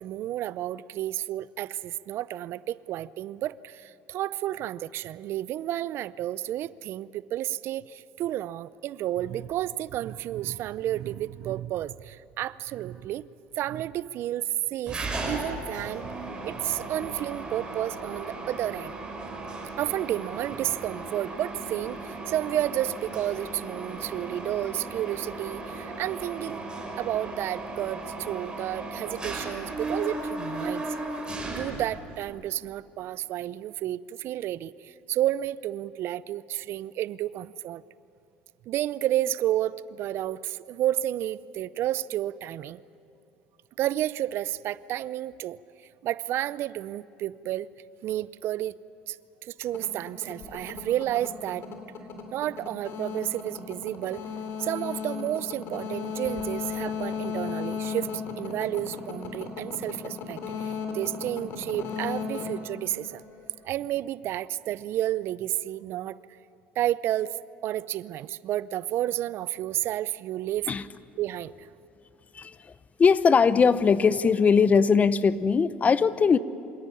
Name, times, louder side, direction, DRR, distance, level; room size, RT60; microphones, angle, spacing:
voice 1, 0.0-13.3 13.6-15.0 15.2-18.9 19.8-26.7 27.0-30.9 31.5-37.8 38.7-42.8 43.8-45.6 46.0-47.7 48.0-48.8 49.1-49.2 49.4-51.7 52.3-54.2 54.6-63.2 63.6-66.2 66.8-70.7 71.2-71.7, right 13 dB, 60° right, 18 dB, 0.6 m, -31 dB
Mechanisms, 14.9-32.3, right 2 dB, 20° right, 6.3 m, -36 dB
sound 1, 49.6-63.5, left 6 dB, 55° left, 3.7 m, -35 dB
voice 2, 72.3-72.7 73.0-76.4, left 5 dB, 30° left, 16 dB, 0.9 m, -20 dB
25.5 x 17.5 x 9.8 m, 2.7 s
supercardioid pair, 85°, 5 cm